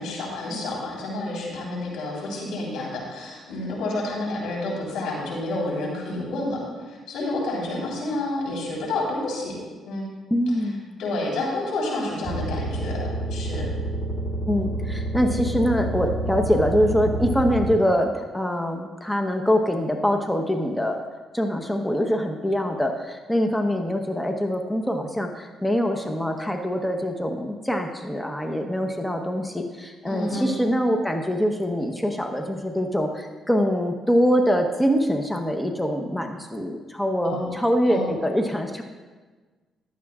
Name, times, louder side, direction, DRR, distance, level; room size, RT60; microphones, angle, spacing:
voice 1, 0.0-9.6 9.9-10.0 11.0-13.7 30.1-30.5 37.2-37.5 37.9-38.1, left 2 dB, 85° left, -3 dB, 3.9 m, -29 dB
voice 2, 10.3-11.0 14.5-21.0 21.3-38.8, equal, 5° left, 4 dB, 1.0 m, -24 dB
sound 1, 12.2-17.7, right 1 dB, 25° right, 2.4 m, -28 dB
15.0 x 11.5 x 2.4 m, 1.3 s
cardioid pair, 90°, 0 cm